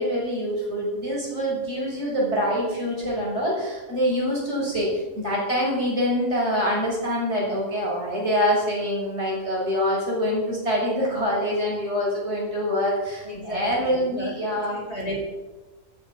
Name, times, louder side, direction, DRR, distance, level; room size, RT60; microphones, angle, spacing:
voice 1, 0.0-14.8, equal, 50° right, -4 dB, 7.1 m, -25 dB
voice 2, 13.2-15.3, equal, 45° left, 0 dB, 4.6 m, -34 dB
16.5 x 14.5 x 5.4 m, 1.2 s
omnidirectional pair, 1.5 m